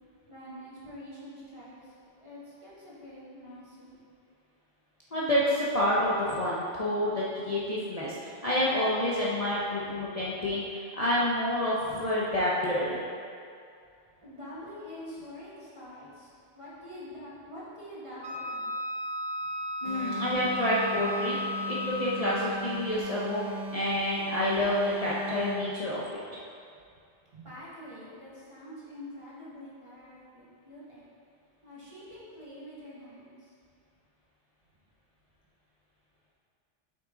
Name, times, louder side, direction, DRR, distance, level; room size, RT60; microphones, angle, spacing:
voice 1, 0.3-4.0 14.2-16.3 16.6-18.7 27.3-31.0 31.6-33.5, left 1 dB, 25° right, -9 dB, 1.8 m, -46 dB
voice 2, 5.1-8.2 8.4-13.0 19.8-21.4 21.7-23.4 23.7-26.2, left 1 dB, 35° left, -8 dB, 0.9 m, -28 dB
Wind instrument woodwind instrument, 18.2-22.4, equal, 85° right, 1.2 m, -35 dB
sound 1, 19.8-25.7, right 2 dB, 65° right, 2.1 m, -38 dB
7.9 x 5.8 x 3.8 m, 2.4 s
omnidirectional pair, 1.2 m